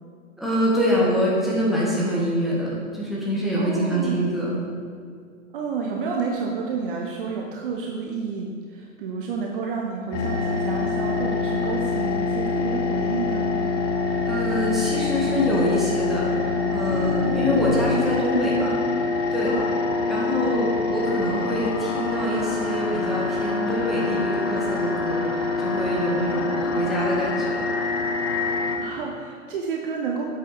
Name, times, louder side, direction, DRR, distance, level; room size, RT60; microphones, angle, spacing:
voice 1, 0.4-4.5 14.3-18.8 19.3-19.5 20.1-27.7, equal, ahead, -6 dB, 1.8 m, -25 dB
voice 2, 3.5-4.2 5.5-13.5 17.3-17.8 18.2-18.7 19.4-19.7 26.3-26.9 28.8-30.3, right 5 dB, 40° right, 0 dB, 0.9 m, -30 dB
sound 1, 10.1-28.8, left 4 dB, 20° left, 0.5 m, -25 dB
7.9 x 7.9 x 4.8 m, 2.2 s
figure-of-eight pair, 105°, 42 cm